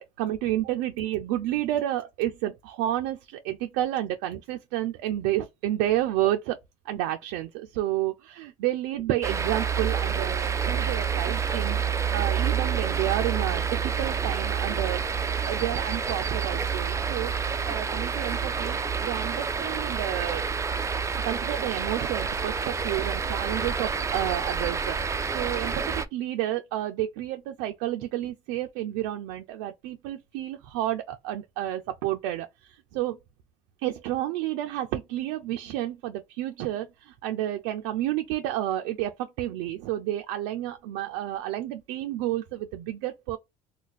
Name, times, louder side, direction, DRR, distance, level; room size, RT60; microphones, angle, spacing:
voice 1, 0.0-6.6 6.9-11.8 12.1-15.0 15.5-20.4 21.2-25.0 25.3-33.2 33.8-43.4, right 13 dB, 85° right, 0.4 m, -30 dB
sound 1, 9.2-26.0, right 6 dB, 15° right, 0.4 m, -28 dB
2.5 x 2.2 x 3.9 m
supercardioid pair, 95°, 18 cm